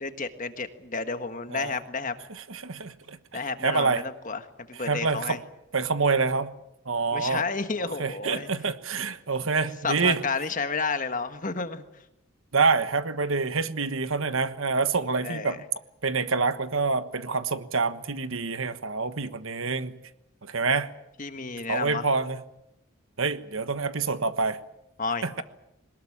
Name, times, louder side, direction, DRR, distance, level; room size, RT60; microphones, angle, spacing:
voice 1, 0.0-2.1 3.3-4.4 4.7-5.4 7.1-8.5 9.8-11.8 15.2-15.6 21.2-22.1 25.0-25.4, left 4 dB, 35° left, 9 dB, 1.5 m, -31 dB
voice 2, 2.3-3.2 3.6-4.0 4.8-5.4 5.7-6.5 6.8-7.4 7.8-10.2 12.5-15.6 16.0-19.9 20.4-20.9 21.7-22.4 23.2-24.6 25.2-25.4, right 4 dB, 65° right, 12 dB, 1.3 m, -27 dB
22.0 x 20.0 x 8.8 m, 0.87 s
head